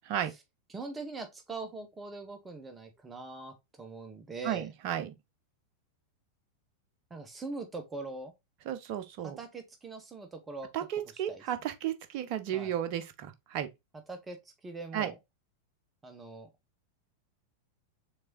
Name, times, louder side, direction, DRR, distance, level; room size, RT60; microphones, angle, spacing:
voice 1, 0.7-4.7 7.1-8.3 9.2-10.9 11.1-11.4 12.5-12.7 14.1-15.2 16.0-16.5, right 3 dB, 15° right, 1.0 m, -42 dB
voice 2, 4.4-5.1 8.7-9.4 10.7-13.7 14.9-15.1, right 10 dB, 45° right, 0.8 m, -33 dB
6.5 x 3.5 x 2.3 m
figure-of-eight pair, 90°, 0 cm